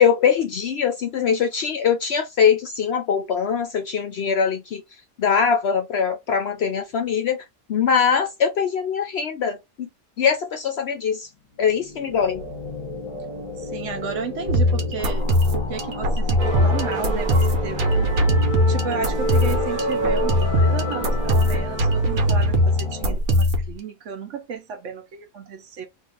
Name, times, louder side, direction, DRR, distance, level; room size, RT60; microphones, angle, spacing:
voice 1, 0.0-4.8 5.2-7.4 7.7-9.9 10.2-11.3 11.6-12.4, left 7 dB, 65° left, 0.6 m, -22 dB
sound 1, 11.6-23.2, left 2 dB, 30° left, 0.8 m, -34 dB
voice 2, 13.6-17.9 18.7-25.9, right 5 dB, 65° right, 0.9 m, -33 dB
sound 2, 14.5-23.7, equal, 90° right, 1.3 m, -21 dB
sound 3, 16.4-22.9, right 2 dB, 40° right, 0.9 m, -29 dB
2.7 x 2.5 x 3.7 m
omnidirectional pair, 1.5 m